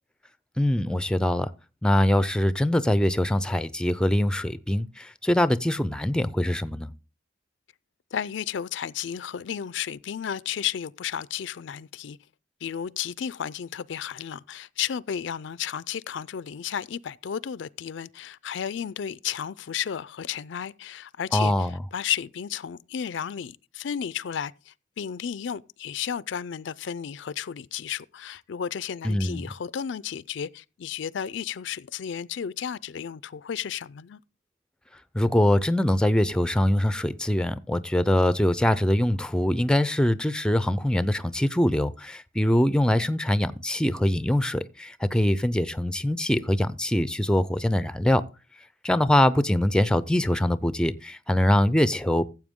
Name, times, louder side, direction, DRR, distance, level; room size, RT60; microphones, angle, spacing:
voice 1, 0.6-1.5 1.8-6.9 21.3-21.8 29.0-29.5 35.1-48.2 48.8-52.3, left 1 dB, 5° left, 0.5 m, -23 dB
voice 2, 8.1-12.2 12.6-34.2, left 8 dB, 65° left, 0.4 m, -33 dB
14.5 x 7.7 x 3.6 m
head